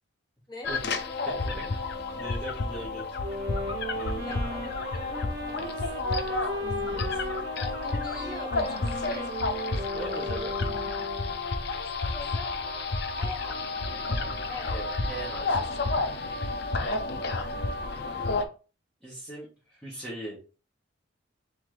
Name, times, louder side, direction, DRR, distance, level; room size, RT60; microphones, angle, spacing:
sound 1, 0.6-18.4, left 3 dB, 55° left, 0.5 m, -31 dB
voice 1, 1.2-1.8 2.1-3.0 3.9-4.2 5.6-5.8 6.2-7.1 9.9-10.5 14.7-15.8 19.0-20.4, right 2 dB, 5° left, -7 dB, 1.3 m, -40 dB
sound 2, 3.2-11.4, right 1 dB, 50° right, 1.1 m, -36 dB
voice 2, 4.2-5.1 5.4-5.8 7.6-9.4 12.1-12.5 13.1-14.8 16.8-17.3, left 3 dB, 20° left, 0 dB, 1.1 m, -43 dB
3.7 x 3.2 x 3.9 m, 0.35 s
head